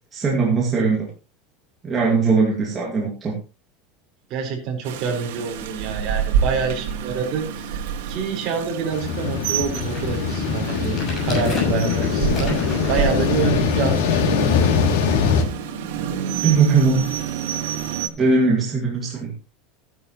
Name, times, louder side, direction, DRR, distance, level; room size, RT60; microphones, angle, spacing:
voice 1, 0.1-1.1 1.8-3.4 16.4-17.1 18.2-19.3, right 4 dB, 15° right, -3 dB, 2.2 m, -19 dB
voice 2, 4.3-14.4, right 5 dB, 35° right, 2 dB, 4.5 m, -27 dB
Rain, 4.8-18.1, right 8 dB, 85° right, 2.2 m, -28 dB
sound 1, 6.5-6.6 7.1-7.2 7.5-8.0 8.6-8.7 9.1-14.0 14.6-14.7, left 2 dB, 25° left, 6.8 m, -36 dB
sound 2, 8.9-15.4, left 7 dB, 85° left, 2.7 m, -22 dB
15.0 x 11.0 x 3.1 m, 0.31 s
supercardioid pair, 175°, 0 cm